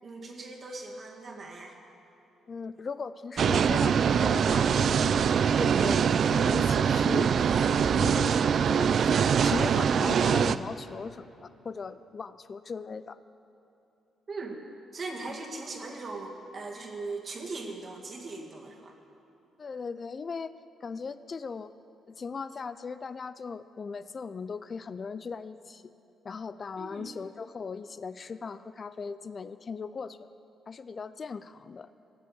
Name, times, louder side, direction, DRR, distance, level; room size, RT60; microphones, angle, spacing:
voice 1, 0.0-1.8 14.3-14.6 14.9-18.9 26.8-27.1, right 3 dB, 40° right, 1 dB, 2.0 m, -39 dB
voice 2, 2.5-5.2 5.6-7.3 7.6-13.2 15.2-15.4 19.6-20.5 20.8-21.7 22.1-25.8 26.2-30.3 30.7-31.9, left 5 dB, 40° left, 14 dB, 0.3 m, -38 dB
sound 1, 3.4-10.6, right 7 dB, 55° right, 0.3 m, -23 dB
17.0 x 7.6 x 6.9 m, 2.8 s
cardioid pair, 90°, 0 cm